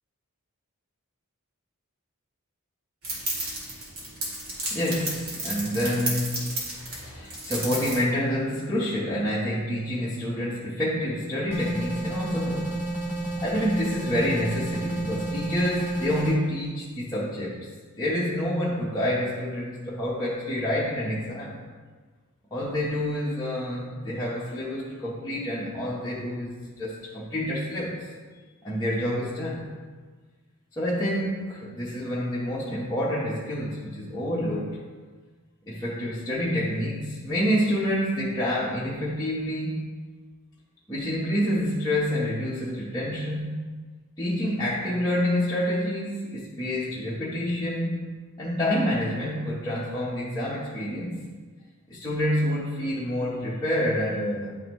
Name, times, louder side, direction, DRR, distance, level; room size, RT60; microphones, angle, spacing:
sound 1, 3.0-8.0, right 2 dB, 75° right, 2.1 m, -33 dB
voice 1, 4.7-6.7 7.1-12.7 13.4-17.7 18.0-21.6 22.5-28.1 28.6-29.6 30.7-34.8 35.7-39.9 40.9-43.6 44.2-48.0 48.4-51.1 51.9-54.6, equal, 15° left, -9 dB, 0.9 m, -28 dB
sound 2, 11.5-16.3, right 1 dB, 10° right, 2.0 m, -31 dB
10.5 x 3.8 x 3.0 m, 1.4 s
head